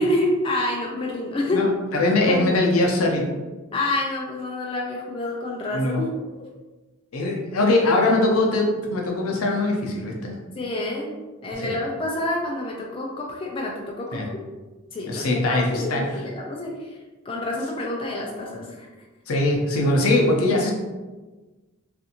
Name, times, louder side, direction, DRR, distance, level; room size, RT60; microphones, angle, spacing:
voice 1, 0.0-1.6 2.3-2.6 3.7-6.1 10.6-11.1 11.4-14.4 14.9-17.0 17.3-18.7, left 1 dB, 25° left, -1 dB, 0.3 m, -28 dB
voice 2, 1.5-3.3 5.7-6.0 7.1-10.4 11.6-11.8 14.1-14.3 15.1-16.3 19.3-20.7, left 2 dB, 75° left, 0 dB, 0.6 m, -22 dB
2.5 x 2.5 x 2.7 m, 1.2 s
head